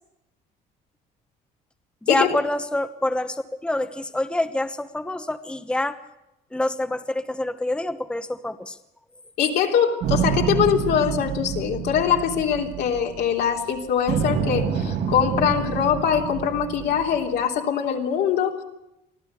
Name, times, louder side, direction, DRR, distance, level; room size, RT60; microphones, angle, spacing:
voice 1, 2.0-6.0 6.5-8.8, left 1 dB, 5° left, 8 dB, 1.1 m, -26 dB
voice 2, 9.4-18.6, left 8 dB, 75° left, 1 dB, 3.4 m, -23 dB
sound 1, 10.0-13.6 14.1-17.4, right 7 dB, 80° right, 4.9 m, -27 dB
24.5 x 15.5 x 8.3 m, 0.89 s
cardioid pair, 110°, 17 cm